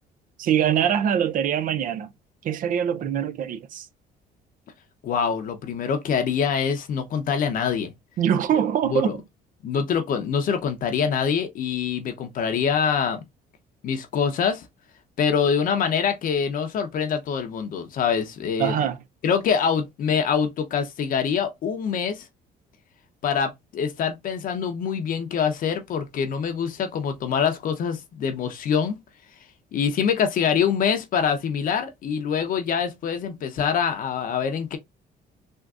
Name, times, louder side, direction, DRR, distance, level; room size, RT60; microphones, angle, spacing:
voice 1, 0.4-2.1 2.4-3.9 8.2-9.2 18.6-19.0, right 9 dB, 55° right, 0.4 m, -23 dB
voice 2, 5.0-7.9 8.9-9.1 9.6-13.2 13.8-14.6 15.2-18.8 19.2-22.3 23.2-29.0 29.7-34.8, left 7 dB, 55° left, 0.7 m, -25 dB
3.6 x 2.5 x 2.3 m
cardioid pair, 110°, 17 cm